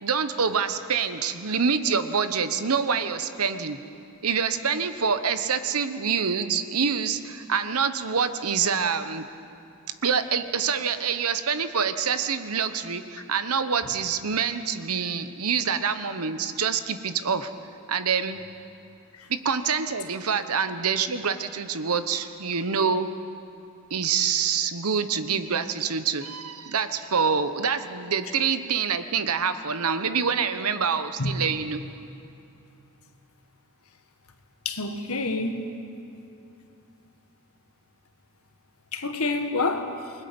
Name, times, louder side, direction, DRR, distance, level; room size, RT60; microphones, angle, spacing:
voice 1, 0.0-3.8 4.2-9.3 10.0-17.5 17.9-18.4 19.3-23.1 23.9-31.8, right 6 dB, 90° right, 10 dB, 1.1 m, -26 dB
voice 2, 34.6-35.7 38.9-39.9, left 3 dB, 80° left, 6 dB, 1.7 m, -27 dB
28.5 x 20.5 x 5.4 m, 2.7 s
head